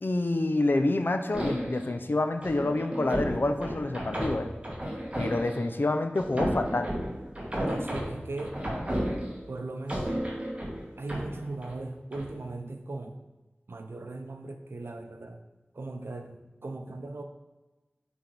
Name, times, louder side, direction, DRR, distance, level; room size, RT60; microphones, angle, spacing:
voice 1, 0.0-4.5 5.2-6.9, left 2 dB, 60° left, 7 dB, 0.5 m, -27 dB
sound 1, 1.3-1.9 2.4-5.7 6.2-9.5 9.9-11.8 12.1-12.3, equal, 30° right, 1.6 m, -33 dB
voice 2, 7.6-8.6 9.5-10.2 11.0-13.2 13.7-15.4 15.7-17.2, right 2 dB, 85° right, 5 dB, 0.6 m, -38 dB
7.3 x 3.5 x 3.9 m, 1.1 s
wide cardioid pair, 50°, 4 cm